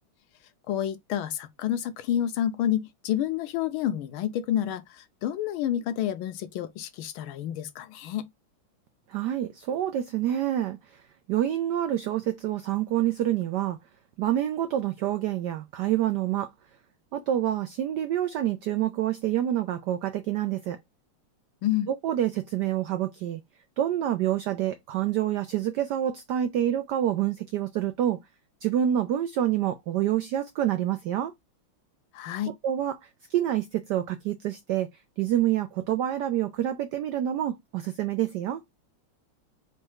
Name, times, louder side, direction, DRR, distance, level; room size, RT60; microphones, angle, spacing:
voice 1, 0.7-8.3 21.6-21.9 32.1-32.6, left 11 dB, 75° left, 1.4 m, -29 dB
voice 2, 9.1-11.0 11.3-13.8 14.2-16.5 17.1-20.8 21.9-23.4 23.8-28.2 28.6-31.3 32.6-34.9 35.2-38.6, right 11 dB, 90° right, 0.9 m, -27 dB
4.3 x 2.3 x 4.6 m
omnidirectional pair, 2.4 m